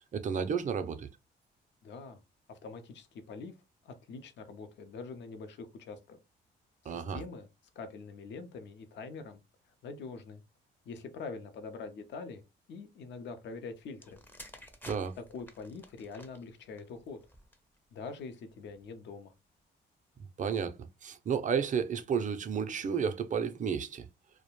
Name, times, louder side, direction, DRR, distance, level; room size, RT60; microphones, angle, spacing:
voice 1, 0.1-1.1 6.9-7.2 14.8-15.1 20.4-20.7 21.0-24.0, right 7 dB, 40° right, 0.5 m, -32 dB
voice 2, 1.8-2.2 2.5-3.5 3.8-6.2 6.8-7.5 7.8-9.4 9.8-10.4 10.9-12.4 12.7-14.2 15.2-17.2 17.9-19.3, left 4 dB, 65° left, 0.6 m, -44 dB
sound 1, 13.9-17.8 18.6-18.8, left 1 dB, 10° left, 0.5 m, -52 dB
2.3 x 2.1 x 3.0 m
cardioid pair, 90°, 20 cm